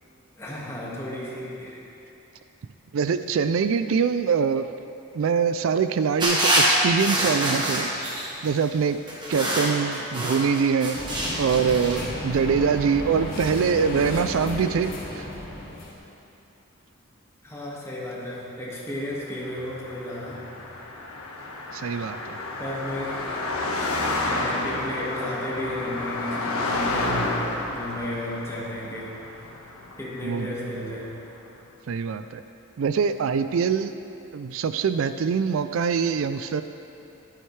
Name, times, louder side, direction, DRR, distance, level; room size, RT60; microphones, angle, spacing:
voice 1, 0.4-2.0 17.4-20.4 22.6-23.3 24.2-27.4 27.7-29.1 30.0-31.1, left 1 dB, 15° left, -5 dB, 1.8 m, -33 dB
voice 2, 2.9-4.7 5.1-8.1 8.4-9.0 9.3-15.3 21.7-22.4 30.2-30.8 31.9-32.4 32.8-33.9 34.3-36.6, right 6 dB, 70° right, 11 dB, 0.3 m, -24 dB
sound 1, 6.2-8.5 9.1-12.0, right 1 dB, 20° right, 1.5 m, -25 dB
sound 2, 10.9-15.9, left 1 dB, 45° left, 2.0 m, -33 dB
Car passing by, 19.2-30.8, left 2 dB, 90° left, 1.4 m, -30 dB
14.0 x 11.0 x 3.3 m, 2.8 s
head